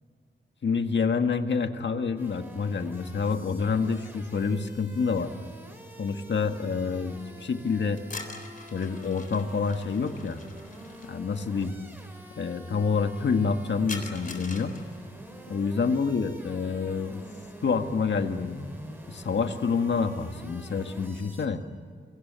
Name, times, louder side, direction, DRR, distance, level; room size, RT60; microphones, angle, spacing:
voice 1, 0.6-5.3 6.0-8.0 8.7-10.4 11.1-11.7 12.4-14.7 15.5-17.2 17.6-18.6 19.1-21.6, left 5 dB, 85° left, 6 dB, 1.8 m, -27 dB
sound 1, 2.2-21.5, right 1 dB, 10° right, 5.9 m, -47 dB
sound 2, 8.0-11.1 13.9-15.1, left 3 dB, 50° left, 3.8 m, -43 dB
28.5 x 25.5 x 6.9 m, 2.2 s
wide cardioid pair, 130°, 18 cm